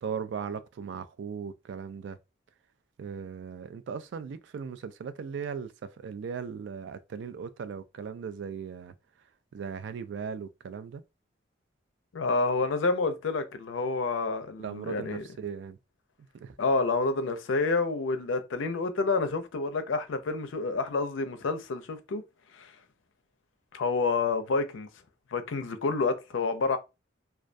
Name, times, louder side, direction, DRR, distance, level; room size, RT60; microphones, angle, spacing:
voice 1, 0.0-2.2 3.0-8.9 9.5-11.0 14.6-15.8 16.4-16.5, right 6 dB, 65° right, 0.3 m, -38 dB
voice 2, 12.1-15.2 16.6-22.2 22.5-22.7 23.7-24.9 25.3-26.8, left 3 dB, 90° left, 0.5 m, -28 dB
2.3 x 2.2 x 2.5 m
head